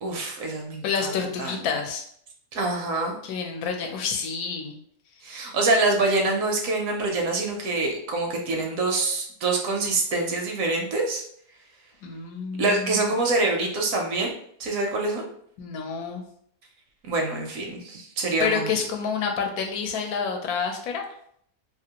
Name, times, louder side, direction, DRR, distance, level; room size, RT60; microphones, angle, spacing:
voice 1, 0.0-1.6 2.5-3.2 5.2-11.2 12.6-14.3 14.6-15.3 17.0-18.8, right 2 dB, 70° right, 2 dB, 0.9 m, -25 dB
voice 2, 0.8-2.0 3.2-4.8 12.0-13.0 15.6-16.2 18.4-21.0, left 6 dB, 85° left, 3 dB, 1.1 m, -28 dB
2.8 x 2.5 x 2.8 m, 0.66 s
omnidirectional pair, 1.6 m